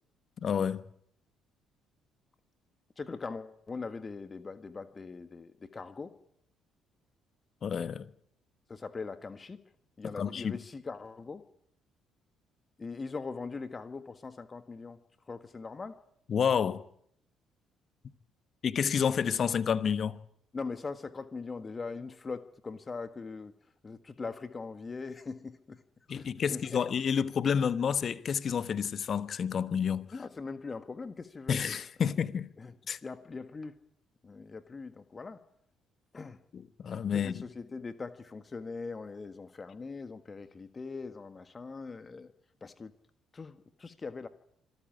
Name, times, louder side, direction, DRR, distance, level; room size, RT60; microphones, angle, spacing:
voice 1, 0.4-0.8 7.6-8.1 10.0-10.6 16.3-16.8 18.6-20.2 26.1-30.1 31.5-32.5 32.9-33.0 36.5-37.4, left 7 dB, 45° left, 1.1 m, -29 dB
voice 2, 3.0-6.1 8.7-9.6 10.0-11.4 12.8-15.0 15.3-16.0 20.5-23.5 23.8-25.8 26.1-26.9 30.1-31.6 32.6-32.7 33.0-33.7 34.2-35.4 36.1-36.4 37.1-42.3 42.6-42.9 43.3-44.3, left 4 dB, 30° left, 1.6 m, -41 dB
26.0 x 14.0 x 10.0 m
figure-of-eight pair, 45°, 0 cm